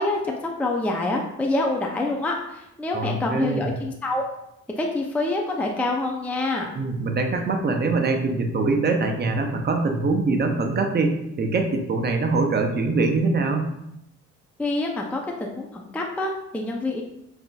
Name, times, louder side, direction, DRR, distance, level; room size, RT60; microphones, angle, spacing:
voice 1, 0.0-4.2 4.8-6.7 14.6-17.0, left 2 dB, 5° left, 1 dB, 0.4 m, -26 dB
voice 2, 2.9-3.7 6.7-13.7, right 3 dB, 35° right, 4 dB, 0.6 m, -23 dB
5.5 x 2.6 x 2.3 m, 0.83 s
cardioid pair, 90°, 30 cm